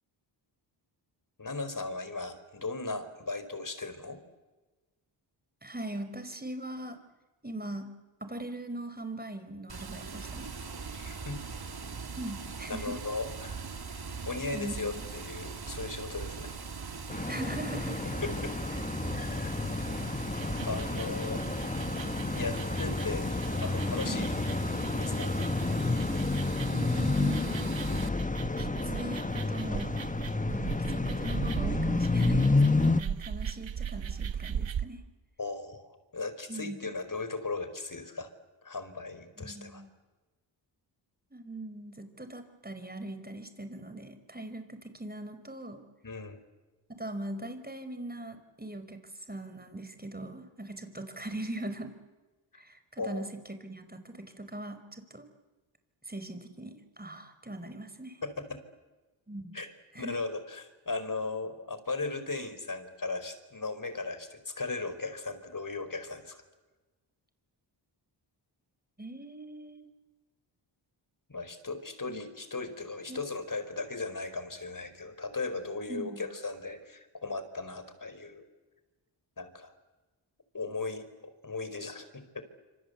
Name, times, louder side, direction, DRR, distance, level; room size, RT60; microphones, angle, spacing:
voice 1, 1.4-4.2 10.9-11.4 12.7-13.6 14.2-16.5 18.2-18.5 20.7-21.4 22.3-24.3 25.0-25.3 35.4-38.3 38.6-39.8 46.0-46.4 53.0-53.3 58.2-58.6 59.5-59.7 59.9-66.4 71.3-78.5 79.4-79.7 80.5-82.4, left 3 dB, 40° left, 11 dB, 4.9 m, -37 dB
voice 2, 5.6-7.0 7.4-7.9 8.2-10.5 12.2-12.9 14.5-15.1 17.3-18.2 24.0-24.3 26.7-27.7 28.6-30.0 30.5-35.0 36.5-36.7 39.4-39.9 41.3-45.8 47.0-49.0 49.3-51.9 52.5-53.3 53.6-55.3 56.1-58.2 59.3-59.6 59.9-60.1 69.0-69.9 72.1-72.2 73.1-73.2 75.9-76.2, right 1 dB, 20° right, 9 dB, 5.1 m, -40 dB
Water, 9.7-28.1, right 5 dB, 50° right, 2.8 m, -41 dB
sound 1, 17.1-33.0, left 3 dB, 15° left, 1.2 m, -30 dB
sound 2, 20.2-34.9, right 8 dB, 65° right, 1.4 m, -39 dB
27.0 x 25.5 x 8.3 m, 1.2 s
cardioid pair, 45°, 49 cm